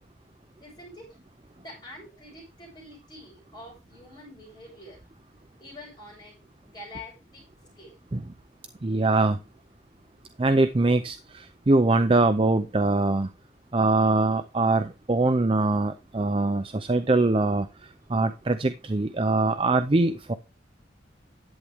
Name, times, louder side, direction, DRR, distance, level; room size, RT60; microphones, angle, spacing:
voice 1, 0.6-1.2 1.5-5.1 5.6-7.4 7.7-8.0, left 1 dB, 25° left, -7 dB, 6.8 m, -46 dB
voice 2, 8.8-9.4 10.4-13.3 13.7-17.7 18.1-20.3, right 2 dB, 30° right, 10 dB, 0.5 m, -23 dB
11.0 x 8.4 x 3.5 m, 0.28 s
head